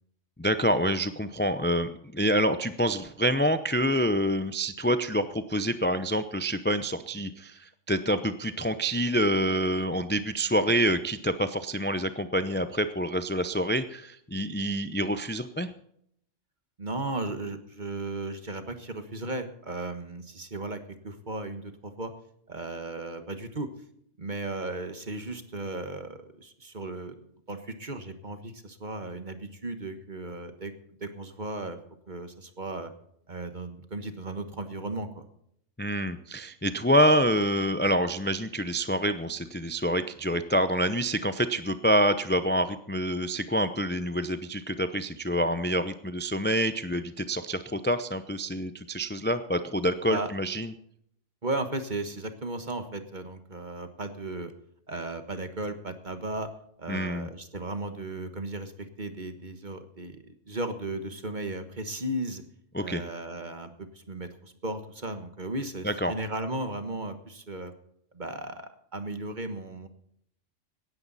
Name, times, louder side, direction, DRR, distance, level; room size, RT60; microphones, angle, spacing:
voice 1, 0.4-15.7 35.8-50.7 56.9-57.3 62.7-63.0 65.8-66.1, equal, 10° left, 11 dB, 0.5 m, -27 dB
voice 2, 16.8-20.8 21.0-22.1 22.5-23.7 24.2-27.2 27.5-30.7 31.0-31.8 32.1-32.9 33.3-35.2 50.1-50.3 51.4-54.5 54.9-56.5 56.8-60.2 60.4-62.4 62.8-67.7 68.1-69.9, right 2 dB, 40° right, 8 dB, 1.6 m, -35 dB
17.5 x 13.5 x 4.1 m, 0.70 s
omnidirectional pair, 1.3 m